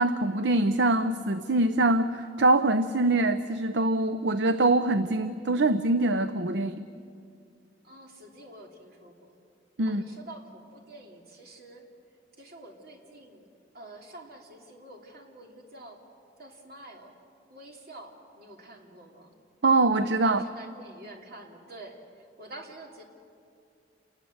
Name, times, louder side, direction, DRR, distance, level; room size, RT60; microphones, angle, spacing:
voice 1, 0.0-6.8 9.8-10.0 19.6-20.4, right 2 dB, 70° right, 11 dB, 0.7 m, -24 dB
voice 2, 7.8-9.3 9.8-11.9 12.4-13.5 13.7-16.0 16.4-17.1 17.5-19.3 20.2-23.0, right 2 dB, 55° right, 1 dB, 3.0 m, -47 dB
28.5 x 20.0 x 7.8 m, 2.4 s
head